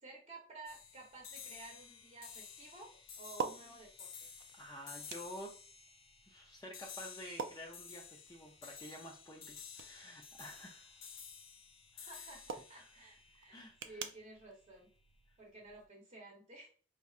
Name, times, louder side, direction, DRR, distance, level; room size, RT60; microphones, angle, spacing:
voice 1, 0.0-2.9 3.2-4.3 12.0-14.9 15.4-16.7, right 2 dB, 35° right, 0 dB, 0.8 m, -54 dB
sound 1, 0.7-14.1, left 6 dB, 75° left, 0.7 m, -53 dB
sound 2, 0.7-15.9, right 6 dB, 60° right, 0.4 m, -50 dB
voice 2, 4.5-5.5 6.3-11.1 11.9-12.1 12.8-12.9 13.5-14.0, equal, 15° left, -1 dB, 0.4 m, -50 dB
4.2 x 2.7 x 2.4 m, 0.39 s
head